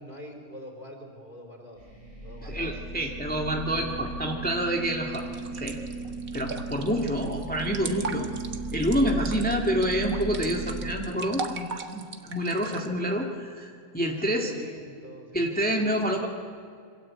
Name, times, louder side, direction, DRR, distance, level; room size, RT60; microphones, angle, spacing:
voice 1, 0.0-1.9 2.2-2.8 14.0-15.5, equal, 35° right, 3 dB, 4.7 m, -43 dB
sound 1, 1.8-10.9, right 2 dB, 50° left, 6.9 m, -36 dB
voice 2, 2.4-5.2 5.5-5.8 6.3-8.3 8.7-14.5 15.3-16.3, equal, 5° left, 1 dB, 2.0 m, -28 dB
sound 2, 5.1-12.9, right 4 dB, 70° right, 2.0 m, -38 dB
26.5 x 25.5 x 8.5 m, 2.3 s
omnidirectional pair, 1.5 m